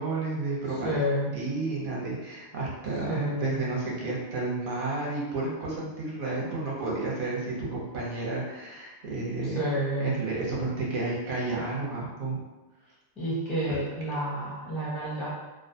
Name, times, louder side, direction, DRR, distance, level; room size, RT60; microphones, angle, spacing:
voice 1, 0.0-1.0 1.3-9.6 10.0-12.4 13.7-13.8, right 3 dB, 50° right, -5 dB, 0.8 m, -31 dB
voice 2, 0.8-1.3 3.1-3.5 9.4-10.1 13.2-15.3, equal, ahead, -8 dB, 0.5 m, -29 dB
2.5 x 2.3 x 2.6 m, 1.1 s
omnidirectional pair, 1.3 m